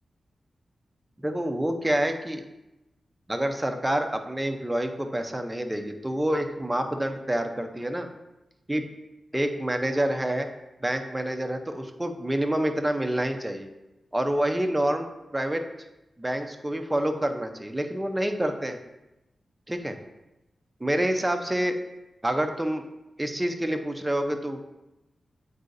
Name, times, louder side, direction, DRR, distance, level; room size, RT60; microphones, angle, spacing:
voice 1, 1.2-2.4 3.3-8.1 8.7-8.8 9.3-10.5 10.8-13.7 14.1-15.6 16.2-18.8 19.7-20.0 20.8-21.8 22.2-22.8 23.2-24.6, right 1 dB, 15° right, 5 dB, 0.6 m, -27 dB
7.9 x 4.7 x 2.6 m, 0.97 s
cardioid pair, 75°, 0 cm